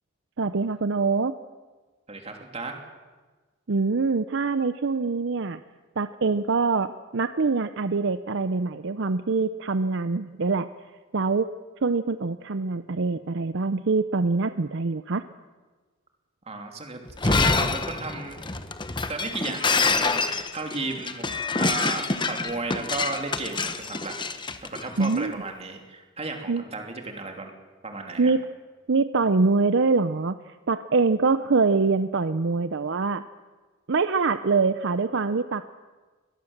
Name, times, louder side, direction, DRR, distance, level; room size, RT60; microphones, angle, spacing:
voice 1, 0.4-1.4 3.7-5.6 6.0-10.7 11.1-11.5 11.8-15.2 25.0-25.3 26.5-26.6 28.2-28.4 28.9-33.2 33.9-35.6, right 4 dB, 60° right, 11 dB, 0.6 m, -24 dB
voice 2, 2.1-2.8 16.5-18.5 19.1-24.1 24.6-27.5 27.8-28.3, right 3 dB, 30° right, 3 dB, 3.1 m, -34 dB
Shatter, 17.1-25.1, left 3 dB, 25° left, 1.1 m, -26 dB
22.5 x 19.0 x 7.3 m, 1.3 s
head